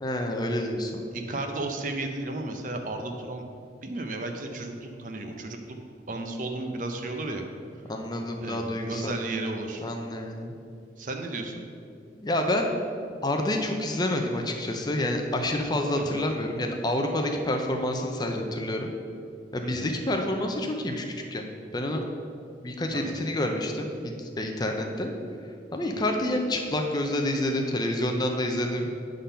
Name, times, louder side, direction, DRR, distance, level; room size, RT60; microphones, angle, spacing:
voice 1, 0.0-1.1 7.9-9.1 9.8-10.5 12.2-12.7 13.2-18.9 19.5-21.0 21.3-21.4 21.7-22.0 22.6-25.1 25.7-28.9, left 1 dB, 25° left, 3 dB, 0.5 m, -28 dB
voice 2, 1.1-3.4 3.8-5.8 6.1-7.4 8.4-9.9 11.0-11.6 16.0-16.2 19.6-20.0 22.9-23.2, right 2 dB, 50° right, 4 dB, 0.6 m, -34 dB
8.4 x 3.9 x 5.5 m, 2.4 s
head